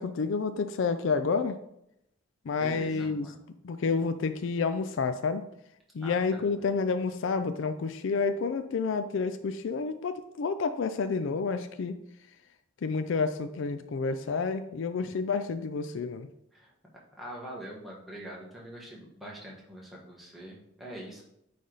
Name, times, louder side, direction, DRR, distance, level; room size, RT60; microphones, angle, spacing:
voice 1, 0.0-1.6 2.4-3.3 3.6-5.4 5.9-12.0 12.8-16.3, left 4 dB, 65° left, 10 dB, 0.4 m, -29 dB
voice 2, 2.6-3.4 6.0-6.2 6.6-6.7 16.5-16.7 17.2-21.2, right 1 dB, ahead, -4 dB, 1.4 m, -43 dB
9.3 x 3.4 x 3.9 m, 0.79 s
head